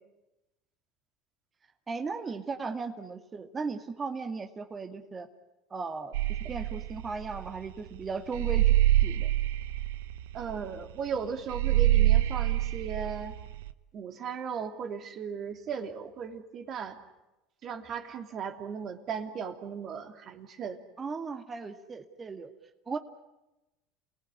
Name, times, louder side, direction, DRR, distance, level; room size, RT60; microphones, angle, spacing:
voice 1, 1.9-5.3 5.7-8.7 9.0-9.3 21.0-22.5 22.9-23.0, right 4 dB, 25° right, 6 dB, 2.1 m, -36 dB
sound 1, 6.1-13.7, right 14 dB, 80° right, 1.0 m, -26 dB
voice 2, 10.3-13.4 13.9-17.0 17.6-20.8, right 6 dB, 45° right, 5 dB, 3.0 m, -37 dB
28.5 x 19.0 x 9.9 m, 1.0 s
hypercardioid pair, 90°, 0 cm